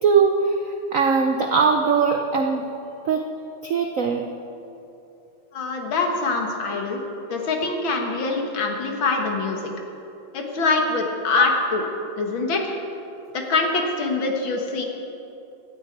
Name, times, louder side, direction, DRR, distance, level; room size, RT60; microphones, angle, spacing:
voice 1, 0.0-0.6 0.9-2.7 3.0-3.3 3.6-4.3, right 5 dB, 70° right, 4 dB, 0.7 m, -20 dB
voice 2, 5.5-7.0 7.3-9.7 10.3-11.8 12.2-12.7 13.3-14.8, left 3 dB, 65° left, 2 dB, 2.2 m, -24 dB
16.5 x 13.5 x 4.6 m, 2.8 s
omnidirectional pair, 2.4 m